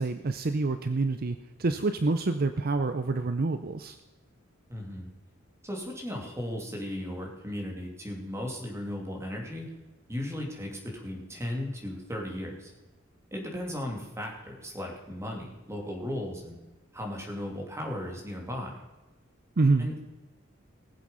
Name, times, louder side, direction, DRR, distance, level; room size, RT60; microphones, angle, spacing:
voice 1, 0.0-4.0 19.6-19.9, right 3 dB, 50° right, 9 dB, 0.6 m, -27 dB
voice 2, 4.7-5.1 5.6-9.7 10.1-12.7 13.3-16.6 16.9-18.8 19.8-20.0, left 1 dB, 15° right, 0 dB, 2.8 m, -36 dB
19.0 x 7.7 x 5.5 m, 1.1 s
head